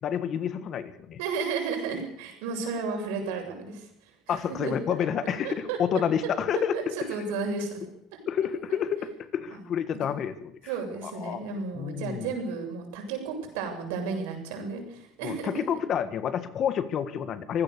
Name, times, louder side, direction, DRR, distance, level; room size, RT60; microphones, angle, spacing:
voice 1, 0.0-1.2 4.3-6.7 8.3-10.5 11.0-11.4 11.7-12.3 15.2-17.6, left 8 dB, 35° left, 12 dB, 1.6 m, -29 dB
voice 2, 1.2-3.9 4.3-4.7 5.4-5.8 6.5-7.8 8.7-8.8 9.5-9.6 10.0-10.2 10.7-15.8, right 5 dB, 85° right, 3 dB, 7.3 m, -33 dB
25.0 x 16.5 x 6.9 m, 0.71 s
cardioid pair, 170°, 0 cm